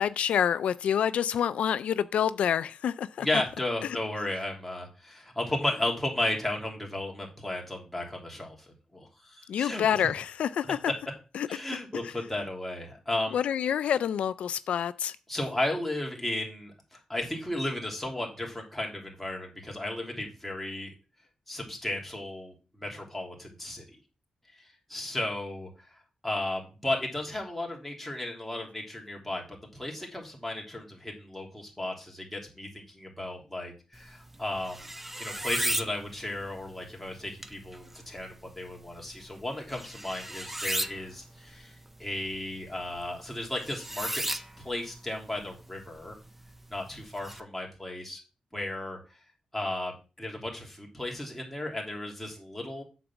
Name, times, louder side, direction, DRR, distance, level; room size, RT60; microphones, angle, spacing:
voice 1, 0.0-3.3 3.8-3.9 9.5-10.8 11.3-11.5 13.3-15.2, left 9 dB, 90° left, 0.4 m, -27 dB
voice 2, 3.2-9.8 11.5-13.4 15.3-20.9 21.5-23.8 24.5-29.4 29.7-34.9 35.2-44.2 44.6-46.1 46.7-48.2 48.5-49.0 49.5-52.8, left 1 dB, 5° left, 2.8 m, -34 dB
sound 1, 33.9-47.4, right 1 dB, 10° right, 0.6 m, -38 dB
8.4 x 4.0 x 7.1 m
wide cardioid pair, 115°, 2 cm